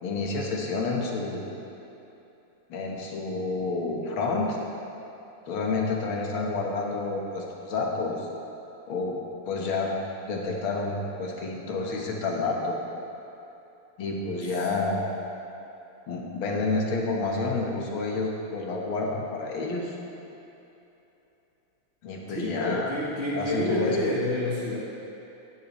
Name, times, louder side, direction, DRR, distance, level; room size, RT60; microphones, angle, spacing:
voice 1, 0.0-1.6 2.7-4.6 5.5-8.3 8.9-9.2 9.5-9.9 10.3-10.9 11.2-12.8 14.0-15.1 16.1-20.0 22.0-23.0 23.3-24.2, left 3 dB, 75° left, -1 dB, 2.1 m, -29 dB
voice 2, 22.3-24.8, left 1 dB, 40° left, -7 dB, 1.2 m, -28 dB
14.5 x 11.0 x 3.1 m, 2.9 s
omnidirectional pair, 2.3 m